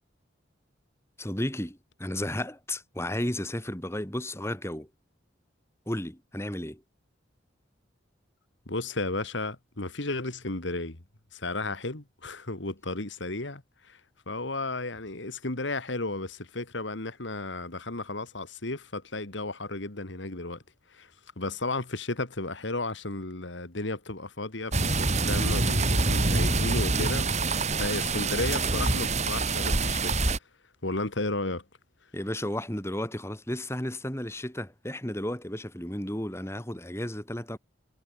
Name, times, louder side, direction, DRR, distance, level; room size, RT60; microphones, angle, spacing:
voice 1, 1.2-4.9 5.9-6.8 32.1-37.6, left 1 dB, 15° left, 3.6 m, -33 dB
voice 2, 8.7-11.0 11.3-13.6 13.9-14.0 14.3-20.6 20.9-21.1 21.4-30.2 30.8-31.6, left 2 dB, 75° left, 2.4 m, -33 dB
sound 1, 24.7-30.4, right 3 dB, 35° right, 3.0 m, -26 dB
head